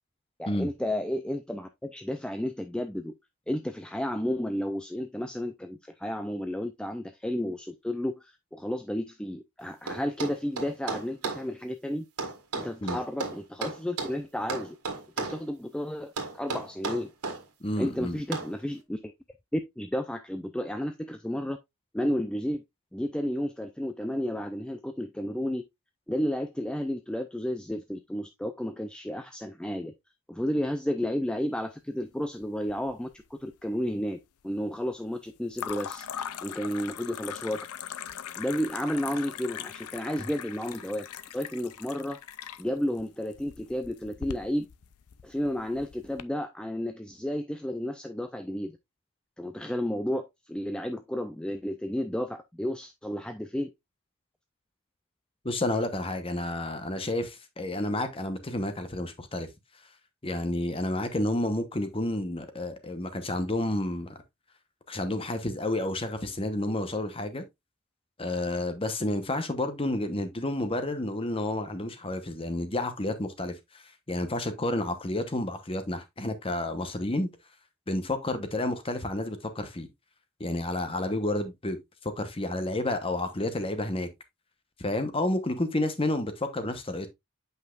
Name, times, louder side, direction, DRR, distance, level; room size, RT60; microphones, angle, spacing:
voice 1, 0.4-3.2 3.5-12.0 12.5-14.8 15.2-17.1 17.8-19.1 19.5-21.6 21.9-22.6 22.9-25.6 26.1-29.9 30.3-34.2 34.4-36.1 36.4-37.7 38.4-41.1 41.3-42.2 42.6-44.7 45.2-48.7 49.4-53.7, equal, 5° left, 0.4 m, -32 dB
sound 1, 9.9-11.4 12.2-14.2 14.5-15.4 16.2-17.4 18.3-18.5, right 4 dB, 85° right, 1.7 m, -33 dB
voice 2, 17.6-18.2 55.4-59.5 60.2-64.2 64.9-67.4 68.2-73.8 74.1-77.3 77.9-79.9 80.4-84.1 84.8-87.1, left 1 dB, 25° left, 1.0 m, -30 dB
sound 2, 32.4-33.2 33.4-34.1 35.5-46.2, left 9 dB, 80° left, 0.5 m, -41 dB
8.2 x 5.4 x 2.4 m
head